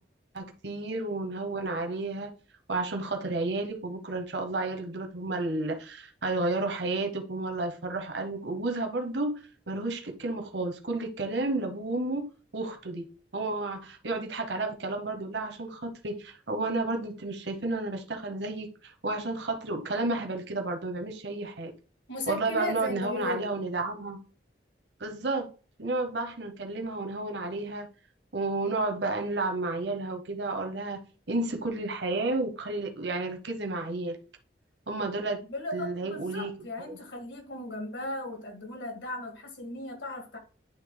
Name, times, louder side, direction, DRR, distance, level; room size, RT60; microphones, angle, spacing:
voice 1, 0.3-2.3 2.7-9.3 9.7-12.3 12.5-13.1 13.3-21.7 22.3-24.2 25.0-25.5 25.8-27.9 28.3-31.0 31.3-34.2 34.9-35.4 35.7-36.5 36.9-37.0, right 2 dB, 70° right, 1.0 m, -31 dB
voice 2, 22.1-23.6 35.5-40.4, left 1 dB, 90° left, 2.1 m, -36 dB
9.8 x 3.3 x 3.8 m
head